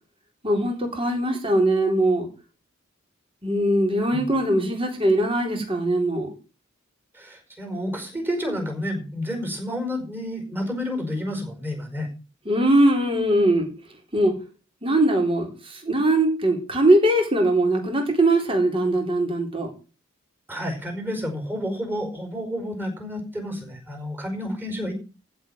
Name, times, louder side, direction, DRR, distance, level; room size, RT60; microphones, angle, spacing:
voice 1, 0.4-2.3 3.4-6.3 12.5-13.7 14.1-14.3 14.8-19.7, right 1 dB, 25° right, 2 dB, 3.9 m, -21 dB
voice 2, 7.1-12.1 20.5-24.9, equal, 10° right, 4 dB, 5.0 m, -30 dB
15.0 x 5.2 x 9.1 m, 0.33 s
head